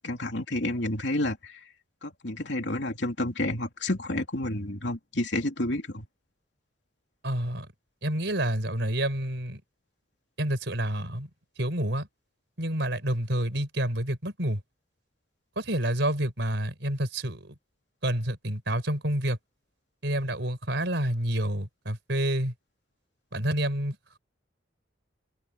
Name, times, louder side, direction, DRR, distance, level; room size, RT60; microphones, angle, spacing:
voice 1, 0.0-1.6 2.0-6.1, left 1 dB, 65° left, 3.4 m, -30 dB
voice 2, 7.2-7.7 8.0-9.6 10.4-11.3 11.6-12.1 12.6-14.6 15.5-17.5 18.0-19.4 20.0-22.5 23.3-24.2, right 1 dB, 65° right, 5.0 m, -28 dB
head